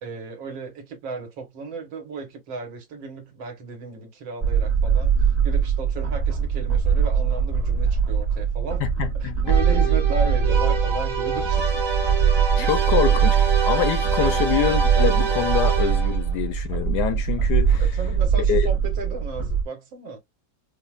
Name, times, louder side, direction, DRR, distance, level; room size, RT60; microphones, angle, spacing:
voice 1, 0.0-8.8 9.1-11.8 12.5-12.7 14.2-14.4 17.8-20.2, right 4 dB, 80° right, 2.0 m, -35 dB
sound 1, 4.4-19.6, right 7 dB, 30° right, 0.7 m, -22 dB
voice 2, 8.8-9.3 12.6-17.8 18.4-18.7, left 10 dB, 70° left, 1.1 m, -25 dB
sound 2, 9.5-16.3, right 4 dB, 50° right, 1.1 m, -27 dB
5.1 x 2.1 x 2.4 m
omnidirectional pair, 2.1 m